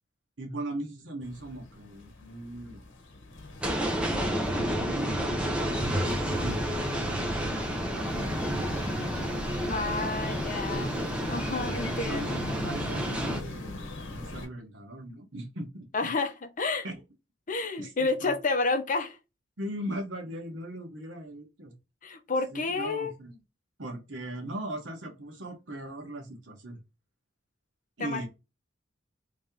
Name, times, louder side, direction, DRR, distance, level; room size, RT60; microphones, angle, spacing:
voice 1, 0.4-2.9 4.5-7.1 7.4-8.9 10.7-11.0 11.4-15.9 16.8-17.0 17.8-18.3 19.6-21.8 22.5-23.4 23.8-26.8 28.0-28.3, right 1 dB, 70° right, 1.2 m, -39 dB
sound 1, 1.2-14.5, left 2 dB, 75° left, 1.0 m, -40 dB
sound 2, 3.6-13.4, equal, 5° right, 0.7 m, -30 dB
voice 2, 9.6-10.9 11.3-12.4 15.9-16.8 17.5-19.2 22.0-23.1 28.0-28.3, left 3 dB, 45° left, 0.7 m, -30 dB
3.1 x 2.8 x 3.6 m
head